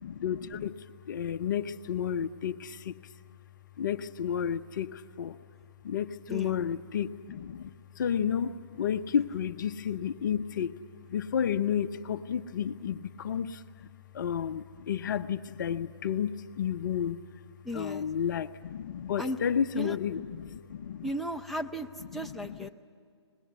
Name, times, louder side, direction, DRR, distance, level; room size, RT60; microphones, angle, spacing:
voice 1, 0.0-3.1 3.8-5.4 5.8-10.7 11.1-13.9 14.1-17.2 17.7-21.1 22.1-22.7, left 8 dB, 40° left, 11 dB, 0.7 m, -32 dB
voice 2, 17.6-18.1 19.2-19.4 19.7-20.0 21.0-22.7, equal, ahead, 2 dB, 0.6 m, -35 dB
24.5 x 20.5 x 8.1 m, 2.3 s
figure-of-eight pair, 140°, 15 cm